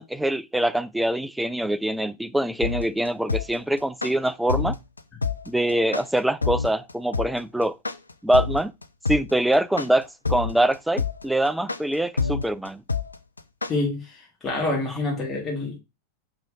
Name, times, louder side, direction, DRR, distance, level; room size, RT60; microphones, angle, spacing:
voice 1, 0.0-4.8 5.5-7.8 8.2-8.7 9.1-12.8, right 1 dB, 5° right, 0.3 m, -24 dB
sound 1, 2.6-13.7, left 5 dB, 80° left, 0.3 m, -27 dB
voice 2, 13.7-15.8, left 2 dB, 20° left, 1.6 m, -27 dB
5.0 x 3.9 x 2.5 m
figure-of-eight pair, 90°, 0 cm